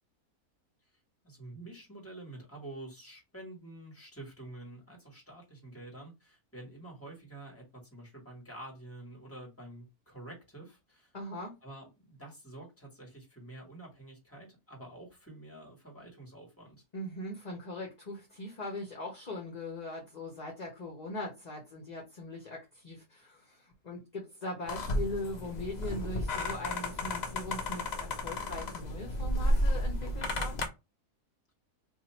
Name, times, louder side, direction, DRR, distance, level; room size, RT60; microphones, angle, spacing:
voice 1, 1.2-11.1 11.6-16.8, right 2 dB, 10° left, 1.4 m, -48 dB
voice 2, 11.1-11.5 16.9-30.6, left 1 dB, 35° left, 0.8 m, -40 dB
sound 1, 24.7-30.7, left 1 dB, 70° left, 0.4 m, -32 dB
2.7 x 2.7 x 4.2 m
omnidirectional pair, 1.6 m